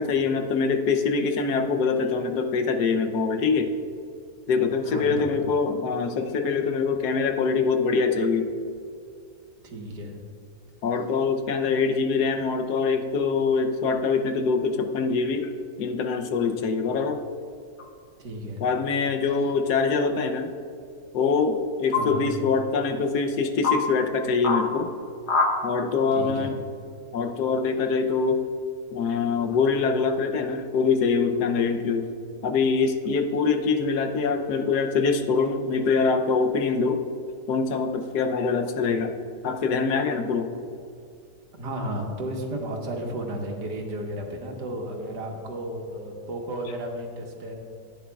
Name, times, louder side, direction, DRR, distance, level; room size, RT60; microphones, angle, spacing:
voice 1, 0.0-3.7 4.5-8.5 10.8-15.5 15.8-17.2 18.6-20.5 21.1-24.9 25.6-26.5 27.1-28.4 28.9-32.1 32.4-37.0 37.5-39.1 39.4-40.5, left 5 dB, 70° left, 6 dB, 1.2 m, -24 dB
voice 2, 4.9-5.4 9.6-10.2 18.2-18.6 21.9-22.3 26.1-26.6 41.5-47.5, right 1 dB, 75° right, 1 dB, 1.9 m, -33 dB
sound 1, 17.8-17.9 19.4-19.8 21.9-22.0 22.9-23.0 23.6-23.8 24.4-24.6 25.3-25.5, left 4 dB, 45° left, 1.1 m, -24 dB
15.0 x 9.5 x 2.3 m, 2.4 s
omnidirectional pair, 1.8 m